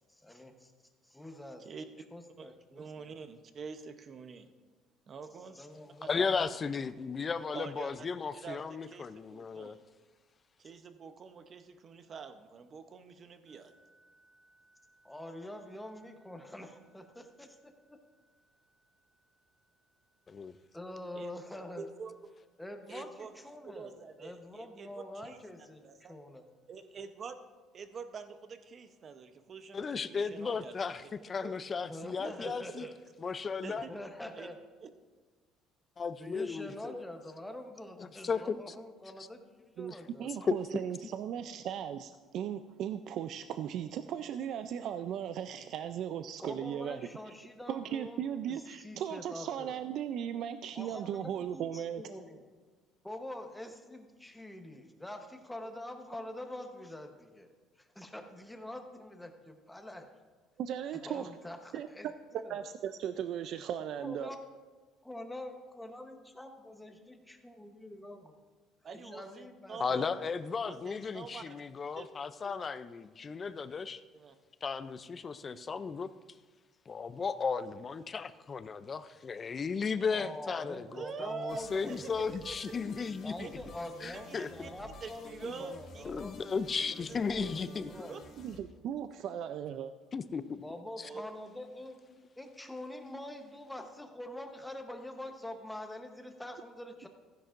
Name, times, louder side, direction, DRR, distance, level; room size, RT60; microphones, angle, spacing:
voice 1, 0.1-0.7 1.0-1.7 2.1-3.2 5.5-6.5 15.0-18.0 20.7-21.9 22.6-25.8 26.1-26.4 31.9-33.0 33.9-34.6 36.2-40.3 46.4-49.8 50.7-52.4 53.0-57.5 57.8-60.1 61.0-62.6 64.0-64.4 65.0-68.3 69.0-70.3 80.1-82.1 83.2-86.6 87.1-88.2 90.6-92.0 92.4-97.1, left 1 dB, 5° left, 5 dB, 0.9 m, -45 dB
voice 2, 2.4-4.5 5.1-5.6 6.0-6.3 7.5-7.9 8.3-9.8 10.6-13.7 21.1-21.4 21.8-22.1 22.9-23.3 23.6-25.4 25.8-26.1 26.7-27.4 27.7-30.8 31.4-31.5 32.2-32.9 33.6-33.9 34.3-34.5 34.8-34.9 68.8-70.1 70.6-71.6 71.9-72.1 72.4-72.6 74.1-74.3 75.4-75.7 80.9-82.6 83.4-83.5 84.0-84.7 85.0-86.1 87.1-87.5 87.8-88.2 91.0-91.2, right 5 dB, 35° right, 9 dB, 0.7 m, -46 dB
voice 3, 6.1-9.8 20.3-20.5 22.9-23.0 29.7-32.9 33.2-33.8 36.0-37.0 38.0-38.6 39.9-40.0 40.3-40.6 69.8-74.0 74.6-76.1 76.9-83.6 84.0-84.5 85.4-85.5 86.1-87.9 90.1-90.6 91.0-91.1 92.1-92.3 93.0-93.1, left 5 dB, 30° left, 14 dB, 0.4 m, -35 dB
sound 1, 13.5-25.7, right 1 dB, 15° right, 3.1 m, -72 dB
voice 4, 40.2-47.0 47.7-52.0 60.6-61.3 61.7-61.9 62.5-64.3 88.4-89.9, right 9 dB, 55° right, 10 dB, 0.4 m, -37 dB
sound 2, 81.5-88.6, left 3 dB, 50° left, 2.0 m, -51 dB
15.0 x 10.0 x 2.5 m, 1.4 s
cardioid pair, 135°, 0 cm